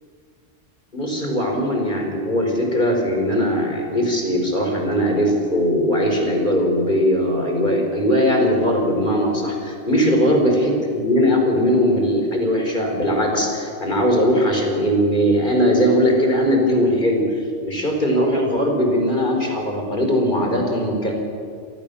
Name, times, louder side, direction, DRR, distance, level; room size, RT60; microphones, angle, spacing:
voice 1, 0.9-17.2 17.6-21.1, equal, 40° left, 1 dB, 5.4 m, -19 dB
28.0 x 25.0 x 7.2 m, 2.2 s
omnidirectional pair, 1.2 m